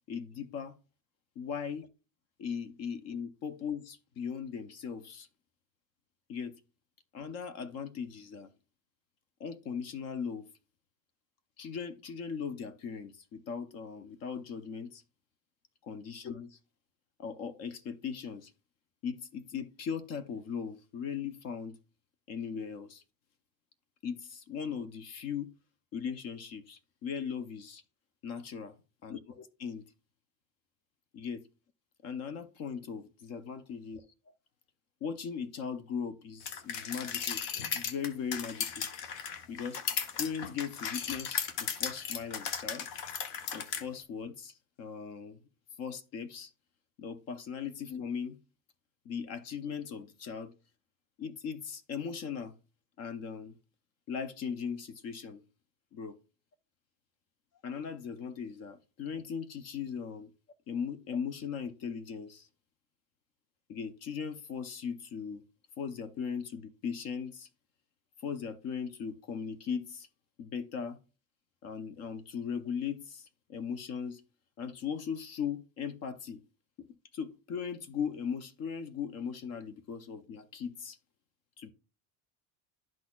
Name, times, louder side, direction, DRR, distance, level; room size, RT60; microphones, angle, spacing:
voice 1, 0.1-0.7 1.4-1.9 2.4-5.3 6.3-6.5 7.1-8.5 9.4-10.5 11.6-15.0 15.8-16.6 17.2-18.5 19.0-21.8 22.3-23.0 24.0-25.5 25.9-27.8 28.2-28.7 29.0-29.8 31.1-31.4 32.0-34.0 35.0-37.4 37.7-38.8 39.5-39.8 40.2-42.9 43.5-45.4 45.8-46.5 47.0-48.4 49.1-50.5 51.2-52.5 53.0-53.5 54.1-55.4 55.9-56.2 57.6-60.3 60.7-62.5 63.7-65.4 65.8-67.5 68.2-70.1 70.4-71.0 71.6-74.2 74.6-76.4 76.8-81.0 81.6-81.7, left 6 dB, 40° left, 0.6 m, -38 dB
sound 1, 36.5-43.8, left 7 dB, 65° left, 0.9 m, -36 dB
12.0 x 4.2 x 2.3 m
cardioid pair, 155°, 39 cm